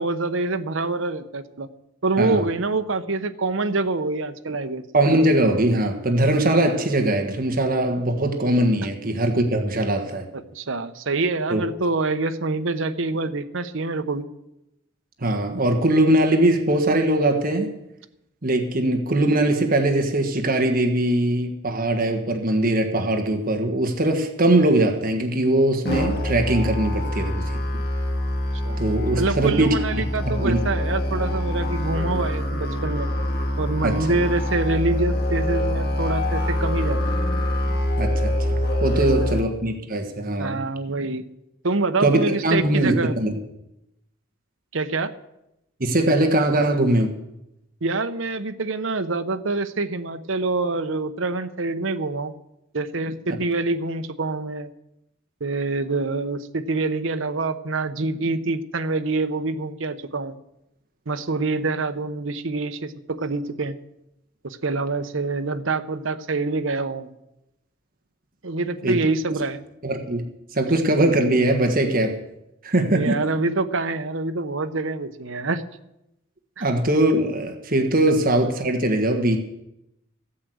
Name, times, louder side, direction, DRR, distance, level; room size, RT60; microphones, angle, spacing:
voice 1, 0.0-1.7 2.0-4.9 10.3-14.3 28.6-28.8 29.2-33.1 33.6-37.2 38.9-39.4 40.4-41.3 41.6-43.2 44.7-45.1 47.8-52.3 52.7-54.7 55.4-60.4 61.1-63.7 64.4-67.1 68.4-69.6 72.9-75.6 76.6-76.7, right 3 dB, 70° right, 9 dB, 0.9 m, -26 dB
voice 2, 4.9-10.2 11.5-11.6 15.2-17.7 18.4-27.4 28.8-29.7 30.2-30.6 33.8-34.0 38.0-40.6 42.0-43.4 45.8-47.1 68.8-69.0 69.8-70.3 70.5-72.2 72.6-73.3 76.6-79.4, right 1 dB, 45° right, 4 dB, 1.5 m, -21 dB
Musical instrument, 25.8-39.4, left 1 dB, 50° left, 2.1 m, -25 dB
14.5 x 8.5 x 7.8 m, 0.88 s
head